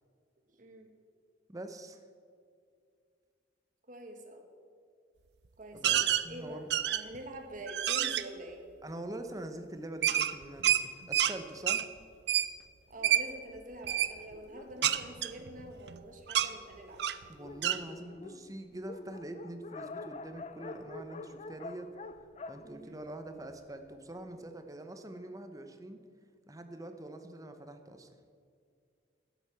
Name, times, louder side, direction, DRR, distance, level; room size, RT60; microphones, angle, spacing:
voice 1, 1.5-2.0 5.7-6.7 8.8-11.8 17.3-21.9 22.5-26.0 26.5-28.1, right 1 dB, 20° right, 7 dB, 0.9 m, -44 dB
voice 2, 3.9-4.5 5.6-8.6 12.9-17.0 22.6-22.9, right 1 dB, 45° right, 4 dB, 1.6 m, -46 dB
sound 1, 5.8-6.2 6.7-7.2 7.7-8.2 10.0-11.3 11.7-11.8 12.3-12.5 13.0-13.2 13.8-14.1 14.8-16.0 16.3-16.5 17.0-17.2 17.6-17.8, right 10 dB, 70° right, 0.5 m, -28 dB
Dog, 13.0-15.9 16.6-16.7 17.0-17.1 17.3-23.7, left 3 dB, 40° left, 0.5 m, -47 dB
12.0 x 8.3 x 7.5 m, 2.3 s
head